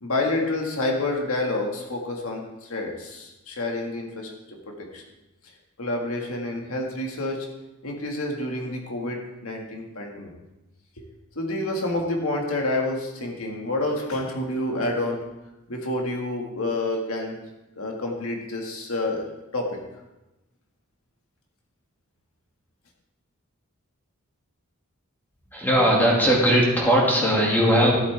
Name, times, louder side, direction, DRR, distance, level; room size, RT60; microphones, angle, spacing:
voice 1, 0.0-5.0 5.8-7.5 7.8-10.3 11.4-15.2 15.7-17.4 17.8-19.3 19.5-19.8, left 2 dB, 85° left, 1 dB, 1.7 m, -28 dB
voice 2, 25.5-28.0, equal, 10° left, -3 dB, 2.1 m, -19 dB
11.5 x 8.3 x 3.4 m, 0.99 s
head